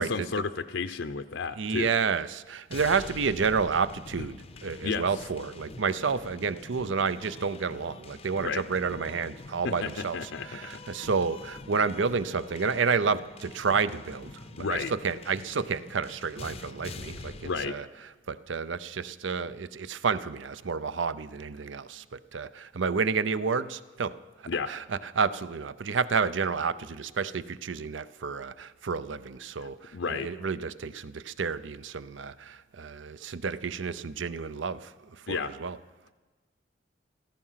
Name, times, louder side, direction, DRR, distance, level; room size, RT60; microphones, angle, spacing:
voice 1, 0.0-1.9 4.8-5.0 8.4-8.6 9.6-10.6 14.6-14.9 17.4-17.7 24.5-24.7 29.9-30.3 35.3-35.5, left 4 dB, 70° left, 9 dB, 0.6 m, -32 dB
voice 2, 1.6-17.9 18.3-24.2 24.7-35.8, right 5 dB, 70° right, 15 dB, 0.6 m, -30 dB
sound 1, 2.7-17.7, left 3 dB, 30° left, 0.6 m, -46 dB
16.0 x 14.5 x 5.7 m, 1.2 s
head